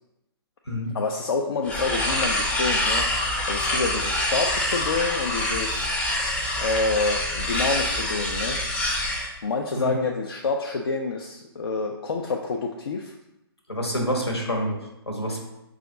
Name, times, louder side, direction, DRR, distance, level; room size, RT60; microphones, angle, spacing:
voice 1, 0.9-5.9 6.6-8.6 9.4-13.1, left 3 dB, 65° left, 2 dB, 0.4 m, -28 dB
sound 1, 1.6-9.3, left 1 dB, 10° left, 0.5 m, -26 dB
voice 2, 13.7-14.8 15.1-15.4, equal, 85° left, 2 dB, 1.1 m, -27 dB
4.9 x 2.4 x 3.8 m, 0.91 s
figure-of-eight pair, 130°, 13 cm